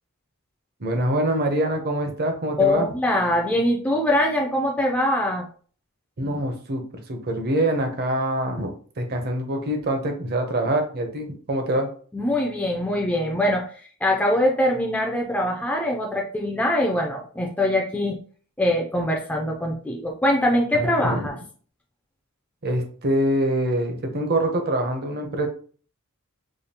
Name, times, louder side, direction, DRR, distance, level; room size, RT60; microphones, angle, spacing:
voice 1, 0.8-2.9 6.2-6.8 7.1-11.9 20.7-21.3 22.6-25.5, right 1 dB, 45° right, 4 dB, 0.8 m, -25 dB
voice 2, 2.6-5.5 12.1-18.2 18.6-21.3, left 1 dB, 5° left, 0 dB, 0.4 m, -23 dB
5.0 x 2.3 x 2.8 m, 0.43 s
head